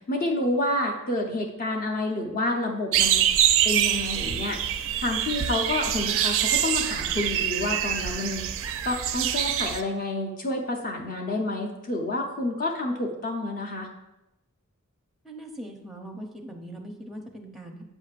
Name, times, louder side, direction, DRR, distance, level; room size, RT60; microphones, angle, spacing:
voice 1, 0.1-3.2 3.6-4.6 5.0-8.5 8.8-13.9, left 2 dB, 40° left, 2 dB, 0.7 m, -29 dB
sound 1, 2.9-9.8, right 10 dB, 60° right, 0.4 m, -25 dB
voice 2, 15.2-17.8, right 1 dB, ahead, 2 dB, 0.6 m, -40 dB
7.9 x 6.3 x 2.4 m, 0.94 s
head